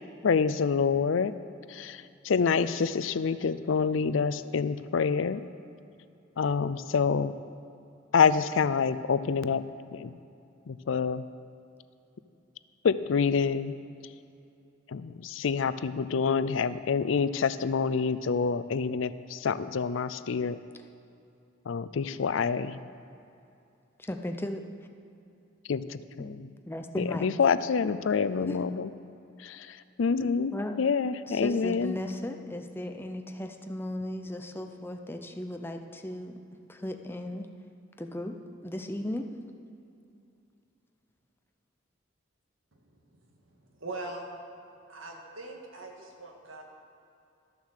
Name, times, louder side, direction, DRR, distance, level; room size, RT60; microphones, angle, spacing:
voice 1, 0.2-1.3 1.7-5.4 6.4-7.3 8.1-9.6 9.9-10.1 10.7-11.2 12.8-13.8 14.9-20.6 21.7-22.8 25.7-26.5 27.2-28.9 29.4-31.9, left 5 dB, 75° left, 13 dB, 0.4 m, -27 dB
voice 2, 24.0-24.7 26.2-26.3 26.7-27.3 28.5-28.6 30.5-30.8 31.3-36.4 36.7-37.5 38.0-39.3, left 1 dB, 10° left, 5 dB, 0.6 m, -36 dB
voice 3, 43.8-44.2 44.9-46.6, right 2 dB, 85° right, 1 dB, 1.8 m, -41 dB
13.0 x 7.0 x 6.5 m, 2.7 s
head